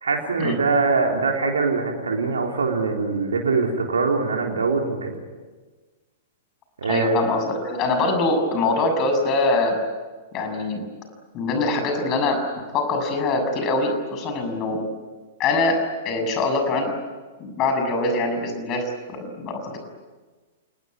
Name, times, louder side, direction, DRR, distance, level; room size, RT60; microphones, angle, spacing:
voice 1, 0.0-5.2 6.8-7.1, right 4 dB, 70° right, 1 dB, 3.6 m, -23 dB
voice 2, 6.8-9.8 10.3-10.9 11.3-14.8 15.4-16.9 17.4-19.8, left 2 dB, 35° left, 6 dB, 6.8 m, -23 dB
28.0 x 20.0 x 9.7 m, 1.3 s
figure-of-eight pair, 105°, 0 cm